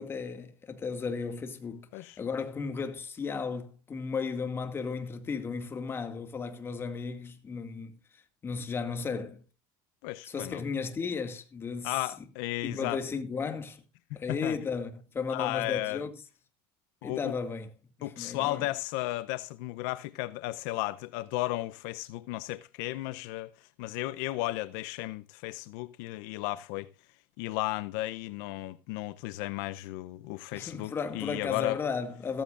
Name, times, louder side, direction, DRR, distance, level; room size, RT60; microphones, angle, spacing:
voice 1, 0.0-8.0 8.4-9.4 10.2-12.0 12.6-13.8 14.1-16.1 17.0-17.7 18.0-18.7 30.5-32.4, left 5 dB, 20° left, 2.2 m, -35 dB
voice 2, 10.0-10.6 11.8-13.0 14.3-14.6 15.3-16.0 17.0-17.3 18.0-26.9 27.4-31.8, left 18 dB, 75° left, 0.7 m, -34 dB
15.5 x 14.0 x 2.5 m
cardioid pair, 150°, 11 cm